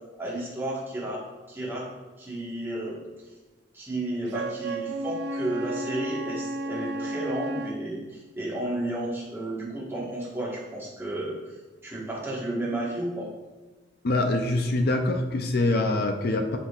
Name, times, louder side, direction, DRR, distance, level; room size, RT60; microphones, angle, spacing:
voice 1, 0.2-1.2 1.5-1.9 2.2-3.0 3.7-11.4 11.8-13.3, right 1 dB, 10° right, -5 dB, 1.4 m, -32 dB
Wind instrument woodwind instrument, 4.3-7.8, right 1 dB, 60° right, 0.3 m, -33 dB
voice 2, 14.0-16.6, left 2 dB, 55° left, 4 dB, 0.5 m, -24 dB
11.0 x 3.8 x 2.4 m, 1.3 s
head